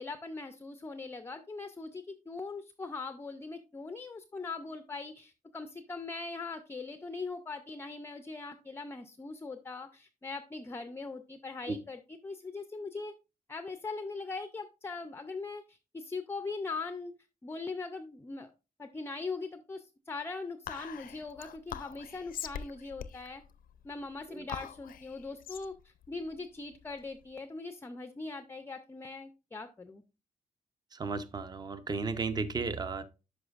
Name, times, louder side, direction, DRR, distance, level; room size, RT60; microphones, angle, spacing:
voice 1, 0.0-13.1 13.5-17.1 17.4-18.5 18.8-23.4 23.8-30.0, left 3 dB, 15° left, 10 dB, 0.4 m, -41 dB
Whispering, 20.7-27.3, left 9 dB, 75° left, 0.4 m, -44 dB
voice 2, 30.9-33.0, right 4 dB, 30° right, 12 dB, 0.6 m, -34 dB
11.0 x 5.1 x 2.4 m, 0.29 s
wide cardioid pair, 155°, 15 cm